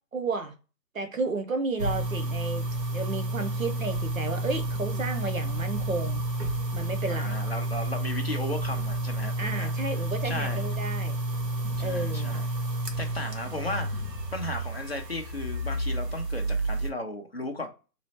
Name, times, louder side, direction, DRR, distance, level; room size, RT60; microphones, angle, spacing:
voice 1, 0.1-0.5 0.9-2.6 2.9-6.2 6.7-7.4 9.4-11.2 11.8-12.4, right 3 dB, 55° right, 0.8 m, -32 dB
sound 1, 1.8-16.9, right 1 dB, 80° right, 1.3 m, -30 dB
voice 2, 7.1-9.7 10.2-10.7 11.8-12.6 13.0-14.0 14.3-17.7, left 1 dB, 40° left, 0.6 m, -35 dB
3.1 x 3.0 x 4.1 m
hypercardioid pair, 175°, 48 cm